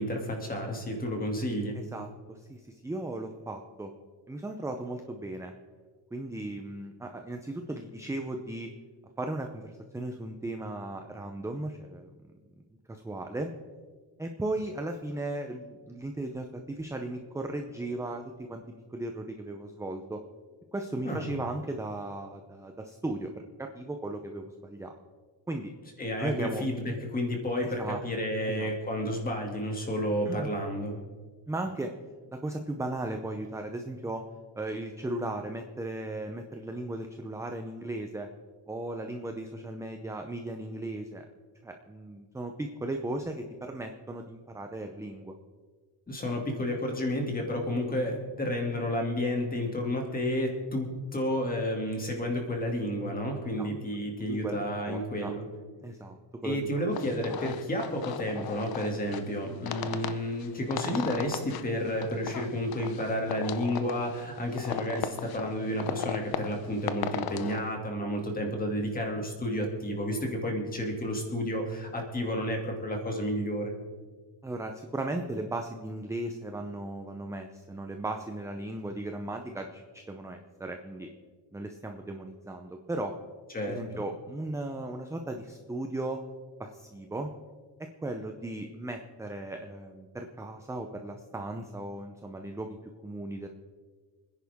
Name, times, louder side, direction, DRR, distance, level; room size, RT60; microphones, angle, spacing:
voice 1, 0.0-1.8 21.0-21.3 26.0-31.0 46.1-55.5 56.4-73.7 83.5-84.0, equal, 20° left, 1 dB, 2.5 m, -31 dB
voice 2, 1.9-3.9 4.3-5.5 6.1-8.7 9.2-12.1 12.9-13.5 14.2-18.6 18.9-20.2 20.7-23.3 23.6-25.0 25.5-25.7 26.2-26.6 27.8-28.0 28.5-28.7 30.3-30.5 31.5-31.9 32.3-34.2 34.6-38.3 38.7-41.2 41.6-45.3 53.6-53.7 54.3-55.3 55.8-56.2 56.4-56.6 57.0-57.5 74.4-81.1 81.5-83.1 83.7-86.2 86.6-87.3 88.0-92.8 93.0-93.5, right 2 dB, 5° right, 4 dB, 0.6 m, -36 dB
sound 1, 56.9-67.6, left 9 dB, 55° left, 0.7 m, -37 dB
27.0 x 10.5 x 3.6 m, 1.5 s
cardioid pair, 180°, 45 cm